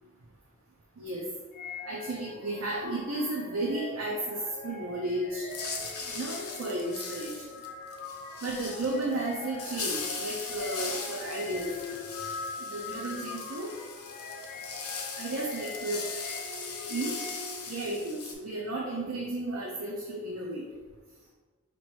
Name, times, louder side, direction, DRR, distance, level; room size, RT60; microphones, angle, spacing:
voice 1, 1.0-1.3 1.9-5.5 6.1-7.4 8.4-11.7 12.6-13.7 15.2-16.1 16.9-17.2 17.7-20.6, right 2 dB, 70° right, -2 dB, 0.6 m, -33 dB
sound 1, 1.5-17.7, left 3 dB, 50° left, 0.4 m, -42 dB
sound 2, 5.5-18.3, left 4 dB, 90° left, 0.8 m, -39 dB
5.0 x 3.0 x 3.1 m, 1.4 s
head